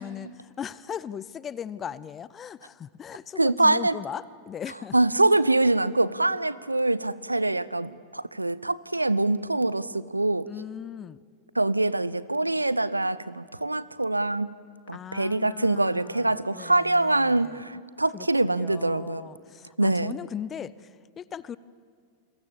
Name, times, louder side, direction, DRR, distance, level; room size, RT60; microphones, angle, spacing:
voice 1, 0.0-4.9 10.5-11.2 14.9-17.6 18.1-21.6, left 8 dB, 25° left, 20 dB, 0.7 m, -38 dB
voice 2, 3.4-4.0 4.9-10.5 11.5-14.5 14.9-19.3 19.8-20.2, right 2 dB, 85° right, 19 dB, 0.6 m, -24 dB
28.5 x 22.5 x 7.4 m, 2.1 s
figure-of-eight pair, 90°, 0 cm